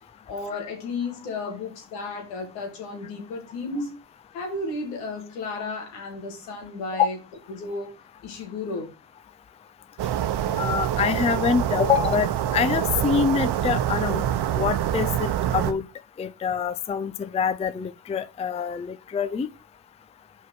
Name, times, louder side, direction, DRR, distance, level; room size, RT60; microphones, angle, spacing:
voice 1, 0.3-4.0 4.3-7.2 7.5-7.9 8.2-8.9, left 3 dB, 85° left, 2.0 m, -33 dB
sound 1, 10.0-15.7, right 11 dB, 55° right, 1.0 m, -25 dB
voice 2, 10.6-14.3 14.5-15.9 16.2-19.5, left 6 dB, 15° left, 0.4 m, -25 dB
5.7 x 4.5 x 4.6 m
hypercardioid pair, 50°, 49 cm